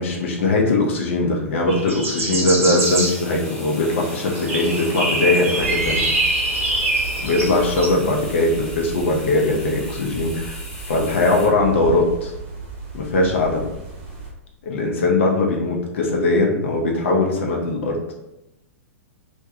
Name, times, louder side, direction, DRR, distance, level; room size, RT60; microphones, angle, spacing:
voice 1, 0.0-6.1 7.2-12.3 12.9-13.7 14.6-18.1, left 2 dB, 55° left, 0 dB, 0.5 m, -20 dB
sound 1, 1.7-7.9, right 2 dB, 65° right, 0.8 m, -24 dB
sound 2, 2.8-11.5, left 1 dB, 5° left, 0.5 m, -39 dB
sound 3, 5.6-14.3, right 4 dB, 40° right, 0.8 m, -35 dB
2.5 x 2.2 x 2.6 m, 0.91 s
figure-of-eight pair, 105°, 8 cm